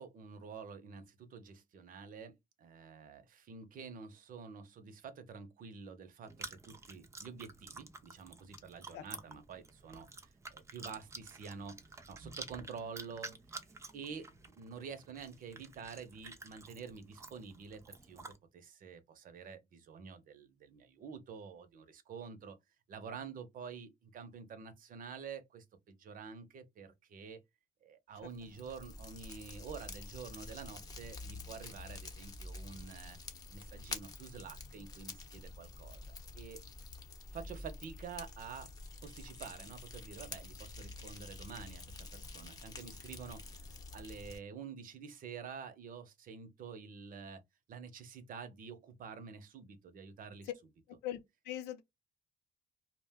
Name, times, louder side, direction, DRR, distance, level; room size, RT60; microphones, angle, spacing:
voice 1, 0.0-10.1 10.5-13.6 13.9-22.6 22.9-27.4 27.8-33.2 33.5-36.6 37.3-38.7 39.0-41.8 42.1-43.5 43.9-47.4 47.7-50.5, right 6 dB, 55° right, 0.7 m, -48 dB
Chewing mastication, 6.3-18.4, right 3 dB, 15° right, 0.5 m, -51 dB
Fire, 28.2-44.4, left 3 dB, 20° left, 0.8 m, -48 dB
voice 2, 50.9-51.8, left 12 dB, 90° left, 0.6 m, -42 dB
2.4 x 2.2 x 3.5 m
cardioid pair, 110°, 17 cm